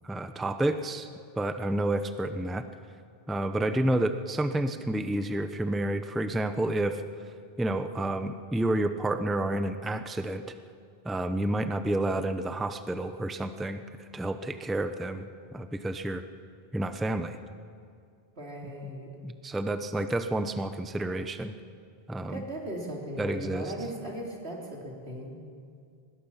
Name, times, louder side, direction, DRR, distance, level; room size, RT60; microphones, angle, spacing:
voice 1, 0.0-1.1 1.3-2.6 3.3-7.0 7.6-10.4 11.0-13.8 14.1-16.2 16.7-17.4 19.2-21.5 22.1-22.4 23.2-23.7, right 1 dB, ahead, 9 dB, 0.7 m, -30 dB
voice 2, 18.4-19.1 22.3-25.4, right 1 dB, 90° right, -2 dB, 4.0 m, -38 dB
23.0 x 20.5 x 5.8 m, 2.3 s
omnidirectional pair, 1.0 m